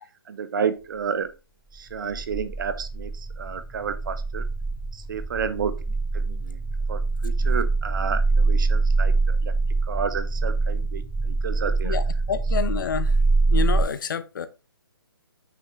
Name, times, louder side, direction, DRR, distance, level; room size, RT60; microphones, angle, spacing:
voice 1, 0.3-1.3 1.7-4.5 4.9-6.6 6.9-9.6 9.8-12.0, right 6 dB, 55° right, 0.8 m, -31 dB
sound 1, 1.9-13.8, right 3 dB, 5° right, 3.3 m, -24 dB
voice 2, 11.8-13.2 13.5-14.5, left 7 dB, 55° left, 0.8 m, -28 dB
6.0 x 5.8 x 3.1 m
hypercardioid pair, 150°, 13 cm